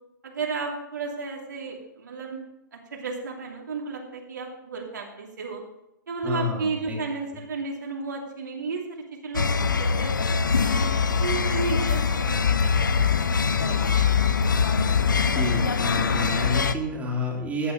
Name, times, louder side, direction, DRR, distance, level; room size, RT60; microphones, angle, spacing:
voice 1, 0.2-2.4 2.7-5.6 6.1-10.5 11.2-13.3 13.6-14.1, right 4 dB, 65° right, 0 dB, 2.7 m, -33 dB
voice 2, 6.2-7.0 15.3-17.7, left 2 dB, 15° right, -2 dB, 3.1 m, -29 dB
sound 1, 9.3-16.7, left 5 dB, 75° left, 0.9 m, -23 dB
14.5 x 9.2 x 5.2 m, 0.88 s
figure-of-eight pair, 115°, 11 cm